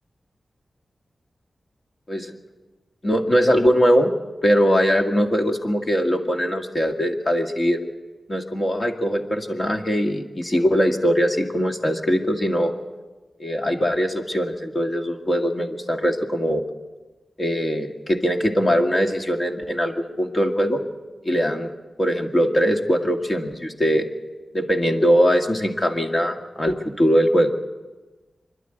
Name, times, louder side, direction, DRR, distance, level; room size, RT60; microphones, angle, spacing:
voice 1, 3.0-4.1 4.4-7.8 8.3-12.7 13.4-16.6 17.4-20.8 21.2-21.7 22.0-24.1 24.5-27.5, equal, 35° left, 4 dB, 2.2 m, -21 dB
26.0 x 12.0 x 9.3 m, 1.2 s
wide cardioid pair, 90°, 0 cm